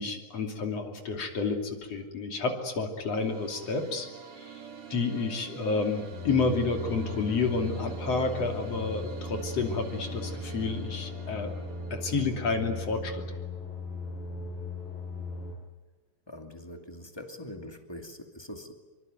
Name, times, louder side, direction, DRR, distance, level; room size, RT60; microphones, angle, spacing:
voice 1, 0.0-4.1 4.4-4.6 4.9-11.5 11.9-13.2, left 4 dB, 45° left, 4 dB, 3.7 m, -30 dB
sound 1, 2.8-13.0, right 7 dB, 45° right, 2.5 m, -46 dB
sound 2, 6.1-15.5, left 3 dB, 30° left, 8.6 m, -38 dB
voice 2, 16.3-18.7, left 1 dB, 10° left, 5 dB, 1.6 m, -43 dB
26.0 x 24.5 x 9.4 m, 1.2 s
omnidirectional pair, 4.2 m